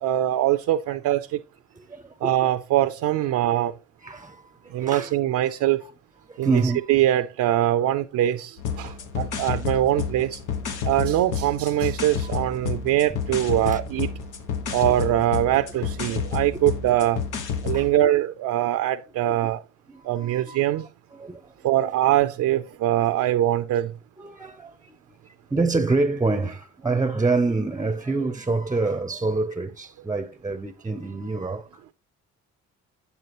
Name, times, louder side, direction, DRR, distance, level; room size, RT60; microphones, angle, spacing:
voice 1, 0.0-1.4 2.2-3.7 4.7-5.8 6.4-6.6 6.9-10.4 10.8-14.1 14.7-17.2 17.6-19.6 20.0-20.9 21.6-23.9, right 13 dB, 75° right, 0.5 m, -23 dB
voice 2, 1.7-2.5 3.5-3.6 4.0-5.1 5.4-5.5 6.3-6.9 8.8-9.0 12.2-12.3 13.7-13.8 17.7-17.9 19.3-19.5 19.9-21.5 24.2-25.0 25.2-31.7, right 3 dB, 10° right, 0.5 m, -27 dB
sound 1, 8.6-17.9, left 6 dB, 90° left, 1.3 m, -30 dB
8.3 x 6.8 x 2.9 m
cardioid pair, 90°, 30 cm